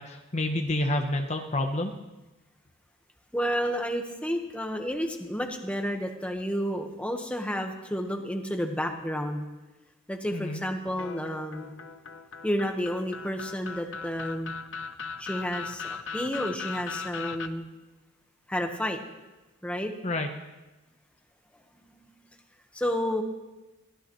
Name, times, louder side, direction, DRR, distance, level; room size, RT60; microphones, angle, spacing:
voice 1, 0.0-1.9 10.3-10.6 20.0-20.3, left 1 dB, 35° left, 4 dB, 0.9 m, -28 dB
voice 2, 3.3-9.4 10.1-11.7 12.4-14.5 15.2-17.7 18.5-19.0 19.6-19.9 21.7-22.1 22.7-23.2, equal, 5° left, 3 dB, 1.3 m, -31 dB
sound 1, 11.0-17.5, left 5 dB, 65° left, 0.8 m, -38 dB
22.5 x 17.0 x 3.1 m, 1.1 s
head